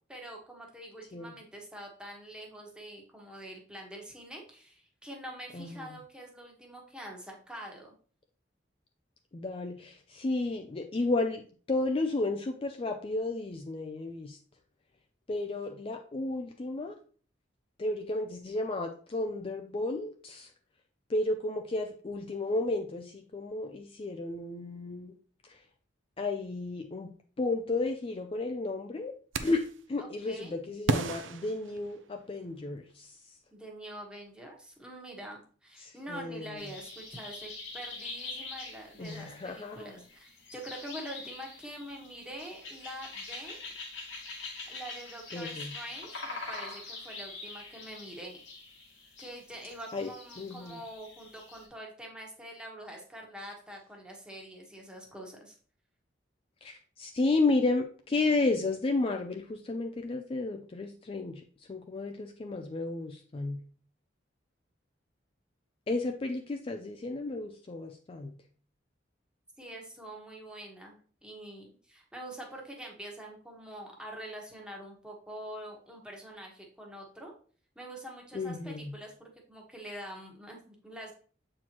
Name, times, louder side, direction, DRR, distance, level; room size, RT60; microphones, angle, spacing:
voice 1, 0.1-8.0 30.0-30.6 33.5-43.6 44.7-48.4 49.2-55.6 69.6-77.3 77.7-81.1, right 1 dB, 5° right, -1 dB, 1.3 m, -45 dB
voice 2, 5.5-5.9 9.3-14.4 15.3-16.9 17.8-20.5 21.1-25.1 25.4-25.6 26.2-27.1 27.4-29.2 29.4-29.6 29.9-33.4 35.8-36.7 39.0-39.9 45.3-45.7 49.9-50.1 50.4-50.8 56.6-61.4 61.7-63.6 65.9-68.3 78.3-78.9, left 2 dB, 30° left, 4 dB, 0.4 m, -32 dB
sound 1, 29.3-29.8 30.9-32.4, right 3 dB, 85° right, 0.5 m, -33 dB
sound 2, 36.6-51.7, left 3 dB, 90° left, 2.2 m, -44 dB
7.3 x 4.3 x 3.0 m, 0.43 s
head